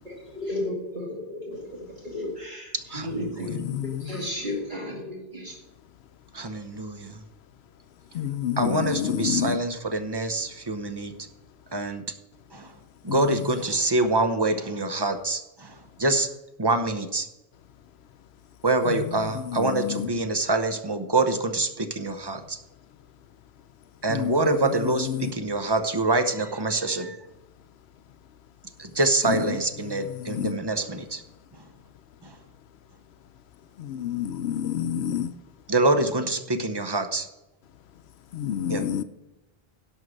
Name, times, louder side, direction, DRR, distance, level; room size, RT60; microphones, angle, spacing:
voice 1, 0.0-3.5 4.0-5.5, left 1 dB, 50° right, 2.3 m, -33 dB
voice 2, 2.9-3.6 6.3-7.2 8.6-11.1 11.7-12.0 12.5-12.7 13.0-16.3 16.6-17.3 18.6-22.6 24.0-27.2 28.8-31.2 32.2-32.4 35.7-37.3 38.7-38.8, right 2 dB, 25° right, 0.8 m, -25 dB
voice 3, 3.5-4.3 8.1-9.6 19.5-20.1 24.1-24.3 30.3-30.6 33.8-35.3 38.3-39.0, left 10 dB, 85° left, 0.8 m, -28 dB
11.0 x 6.4 x 6.5 m
omnidirectional pair, 1.1 m